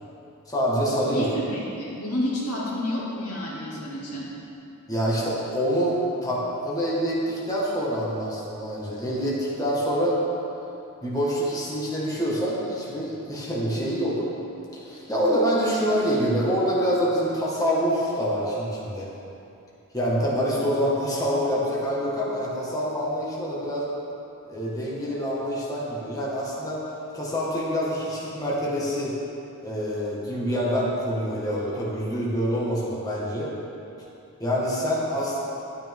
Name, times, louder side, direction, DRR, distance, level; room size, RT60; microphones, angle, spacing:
voice 1, 0.5-1.3 4.9-10.2 11.0-14.2 14.7-19.1 19.9-23.9 24.5-26.8 27.1-29.2 29.6-33.5 34.4-35.4, equal, 15° left, -7 dB, 1.6 m, -26 dB
voice 2, 1.1-4.3, left 1 dB, 75° left, -5 dB, 2.2 m, -30 dB
11.5 x 9.5 x 3.6 m, 2.8 s
head